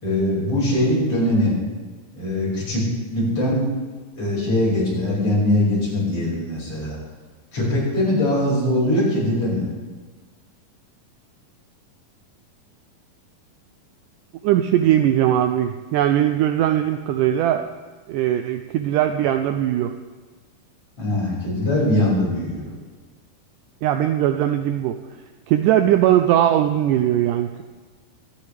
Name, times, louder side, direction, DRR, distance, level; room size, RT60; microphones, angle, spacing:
voice 1, 0.0-1.6 2.1-2.8 3.1-3.7 4.1-7.0 7.5-9.7 21.0-22.7, left 1 dB, 40° left, -6 dB, 6.6 m, -21 dB
voice 2, 14.4-17.6 18.1-19.9 23.8-25.0 25.5-27.6, right 11 dB, 85° right, 7 dB, 1.9 m, -19 dB
24.0 x 10.5 x 3.3 m, 1.4 s
omnidirectional pair, 4.2 m